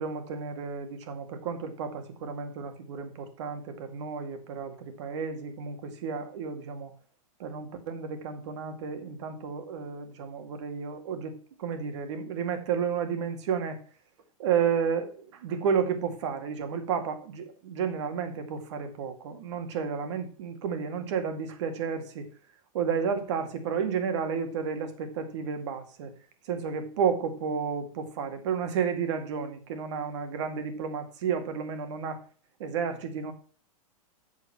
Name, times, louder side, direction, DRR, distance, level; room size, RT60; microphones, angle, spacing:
voice 1, 0.0-6.9 7.4-11.3 11.6-13.8 14.4-22.3 22.7-26.1 26.5-32.2 32.6-33.3, right 6 dB, 55° right, 7 dB, 2.2 m, -32 dB
8.4 x 6.6 x 5.9 m, 0.41 s
supercardioid pair, 160°, 18 cm